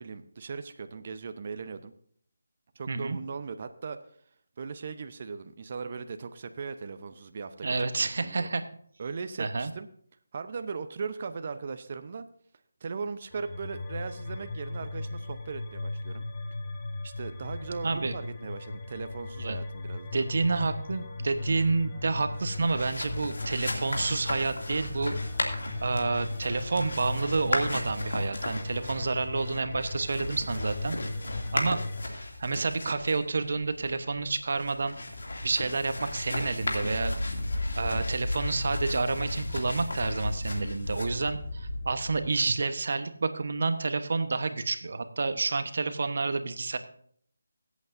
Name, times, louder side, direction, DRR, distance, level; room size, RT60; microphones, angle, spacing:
voice 1, 0.0-1.9 2.7-4.0 4.6-7.9 8.2-8.5 9.0-9.9 10.3-12.3 12.8-16.2 17.0-20.3 31.3-31.4, right 5 dB, 40° right, 9 dB, 0.8 m, -38 dB
voice 2, 2.9-3.2 7.6-8.6 9.4-9.7 17.8-18.1 19.4-19.6 20.1-25.2 25.8-31.0 31.5-35.0 35.4-37.2 37.7-46.8, right 3 dB, 55° right, 10 dB, 1.1 m, -29 dB
sound 1, 13.3-32.0, left 2 dB, 25° left, 1.2 m, -37 dB
sound 2, 22.3-42.3, left 2 dB, 70° left, 2.6 m, -35 dB
23.5 x 8.3 x 2.7 m, 0.63 s
figure-of-eight pair, 160°, 0 cm